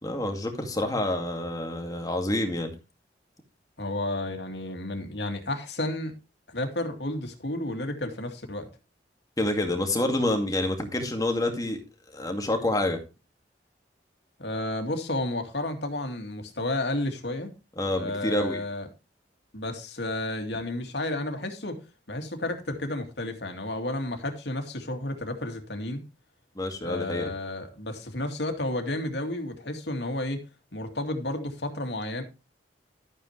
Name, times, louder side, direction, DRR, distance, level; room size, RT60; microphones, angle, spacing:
voice 1, 0.0-2.7 9.4-11.8 12.1-13.0 17.8-18.6 26.6-27.3, left 1 dB, 20° left, 2.2 m, -27 dB
voice 2, 3.8-6.1 6.5-8.7 14.4-17.5 17.9-18.9 19.5-21.8 22.1-26.0 26.8-30.4 30.7-32.2, left 1 dB, 75° left, 2.3 m, -32 dB
12.5 x 8.9 x 3.3 m
head